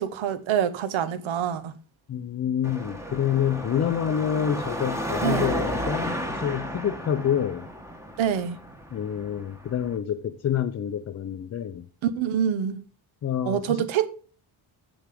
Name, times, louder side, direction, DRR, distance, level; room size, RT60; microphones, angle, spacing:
voice 1, 0.0-1.7 5.2-5.5 8.2-8.6 12.0-12.8 13.5-14.1, right 9 dB, 75° right, 0.9 m, -26 dB
voice 2, 2.1-7.7 8.9-11.9 13.2-13.9, left 9 dB, 35° left, 0.5 m, -27 dB
Car passing by / Traffic noise roadway noise / Engine, 2.6-10.0, equal, 5° right, 1.1 m, -33 dB
8.1 x 7.1 x 3.6 m
cardioid pair, 125°, 48 cm